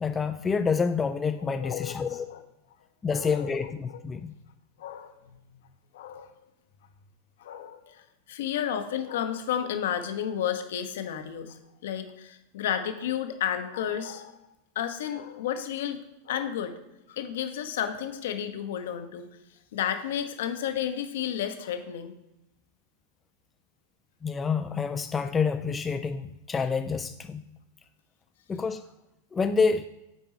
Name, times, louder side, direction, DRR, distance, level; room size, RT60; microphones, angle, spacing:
voice 1, 0.0-2.3 3.0-4.3 24.2-27.4 28.5-28.8 29.3-29.9, left 5 dB, 15° left, 8 dB, 0.3 m, -28 dB
voice 2, 1.6-2.4 3.1-4.0 4.8-5.1 5.5-5.6 5.9-6.3 7.4-14.4 14.7-16.8 17.1-19.3 19.7-22.1, left 9 dB, 55° left, 8 dB, 0.8 m, -32 dB
8.2 x 4.5 x 4.4 m, 0.92 s
figure-of-eight pair, 90°, 0 cm